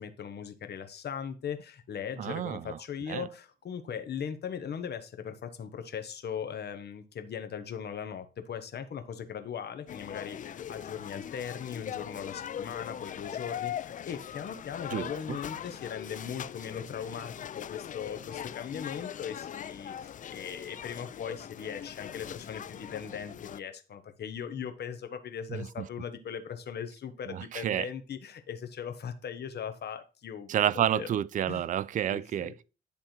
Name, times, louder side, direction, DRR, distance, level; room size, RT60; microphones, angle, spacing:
voice 1, 0.0-31.1 31.5-31.6 32.1-32.5, left 7 dB, 55° left, 1.2 m, -39 dB
voice 2, 2.2-2.8 3.1-3.3 14.9-15.4 25.5-25.9 27.3-27.9 30.5-32.6, right 10 dB, 40° right, 0.4 m, -30 dB
sound 1, 9.9-23.6, left 9 dB, 40° left, 0.4 m, -41 dB
10.5 x 3.5 x 4.4 m
cardioid pair, 90°, 20 cm